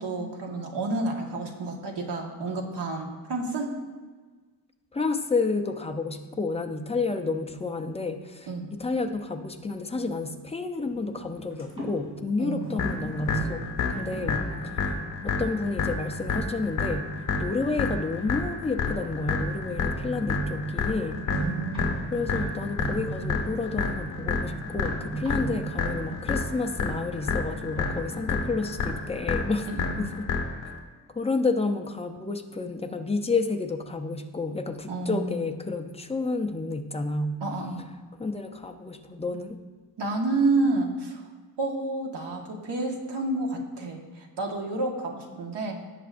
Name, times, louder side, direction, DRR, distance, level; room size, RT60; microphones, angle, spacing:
voice 1, 0.0-3.7 8.5-8.7 12.4-12.8 14.1-14.3 21.3-22.0 29.7-30.2 34.9-35.4 37.4-37.9 40.0-41.2 41.6-45.7, right 2 dB, 80° right, 1 dB, 1.6 m, -30 dB
voice 2, 4.9-8.5 8.8-13.6 13.9-14.9 15.2-17.1 17.4-21.3 22.1-29.7 30.0-30.3 31.1-37.4 38.2-39.6, left 3 dB, 15° left, 4 dB, 0.5 m, -30 dB
sound 1, 10.8-28.9, right 3 dB, 15° right, 3.0 m, -39 dB
sound 2, 12.8-30.8, left 4 dB, 45° left, 1.4 m, -30 dB
17.0 x 6.9 x 2.5 m, 1.4 s
wide cardioid pair, 180°, 41 cm